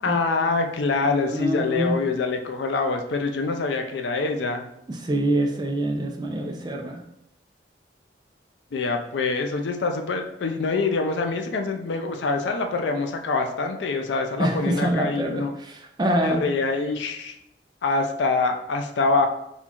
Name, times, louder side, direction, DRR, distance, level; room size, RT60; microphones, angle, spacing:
voice 1, 0.0-4.6 8.7-15.5 16.2-17.4 17.8-19.3, left 3 dB, 85° left, 5 dB, 0.4 m, -25 dB
voice 2, 1.1-2.0 4.9-7.0 14.4-16.4, right 1 dB, 25° right, 2 dB, 0.5 m, -25 dB
4.1 x 2.3 x 2.9 m, 0.78 s
head